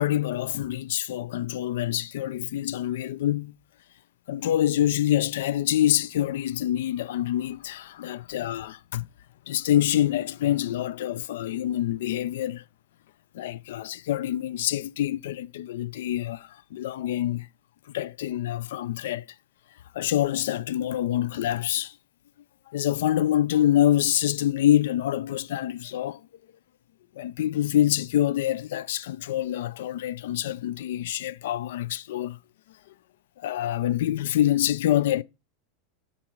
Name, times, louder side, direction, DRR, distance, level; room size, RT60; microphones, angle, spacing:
voice 1, 0.0-3.5 4.3-9.1 9.5-12.6 13.3-17.5 17.9-19.2 19.9-21.9 22.7-26.2 27.2-32.4 33.4-35.2, left 12 dB, 80° left, 0.4 m, -26 dB
12.0 x 4.1 x 4.5 m
supercardioid pair, 170°, 0 cm